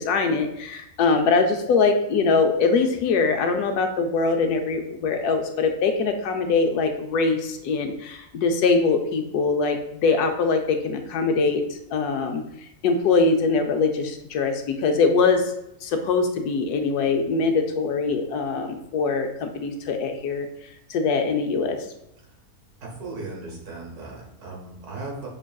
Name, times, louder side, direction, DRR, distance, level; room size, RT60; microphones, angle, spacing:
voice 1, 0.0-11.6 11.9-12.4 12.8-15.5 15.8-20.5 20.9-21.8, left 4 dB, 85° left, 5 dB, 1.1 m, -22 dB
voice 2, 22.8-25.3, right 3 dB, 80° right, -1 dB, 1.6 m, -37 dB
6.0 x 2.4 x 2.3 m, 0.83 s
omnidirectional pair, 1.6 m